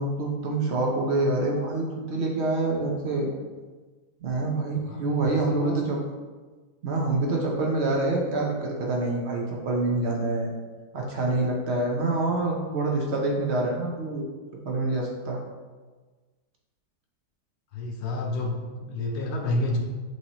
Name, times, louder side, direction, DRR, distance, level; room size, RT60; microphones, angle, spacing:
voice 1, 0.0-3.3 4.2-6.0 6.8-10.5 10.9-14.2 14.6-15.4, right 2 dB, 60° right, -1 dB, 0.7 m, -26 dB
voice 2, 4.9-5.8 17.7-19.8, left 2 dB, 75° left, 1 dB, 0.6 m, -30 dB
6.0 x 2.8 x 2.9 m, 1.3 s
omnidirectional pair, 1.7 m